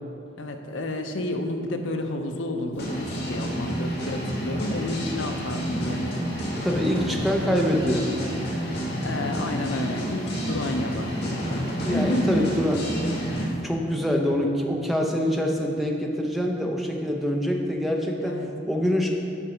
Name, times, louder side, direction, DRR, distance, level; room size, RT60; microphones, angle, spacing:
voice 1, 0.4-6.2 9.0-12.9 13.4-13.6 18.2-18.5, left 1 dB, 70° left, 5 dB, 0.6 m, -30 dB
sound 1, 2.8-13.5, equal, 55° left, 1.6 m, -30 dB
voice 2, 6.6-8.1 11.8-12.8 13.6-18.4 18.7-19.1, equal, ahead, 1 dB, 0.5 m, -25 dB
7.3 x 5.3 x 4.9 m, 2.6 s
head